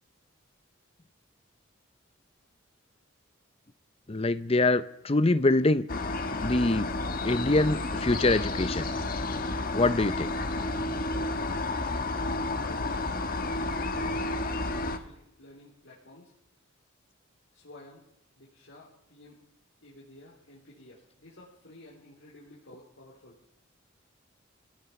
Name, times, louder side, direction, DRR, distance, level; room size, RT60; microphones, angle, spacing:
voice 1, 4.1-5.8 6.4-6.9 7.2-8.9 9.7-10.3, left 2 dB, 30° left, 14 dB, 0.7 m, -24 dB
sound 1, 5.9-15.0, left 2 dB, 45° left, 1.4 m, -31 dB
voice 2, 12.1-14.4 14.7-16.3 17.5-18.0 18.4-19.4 19.8-23.4, left 1 dB, 75° left, -5 dB, 4.3 m, -52 dB
22.5 x 17.5 x 7.1 m, 0.80 s
head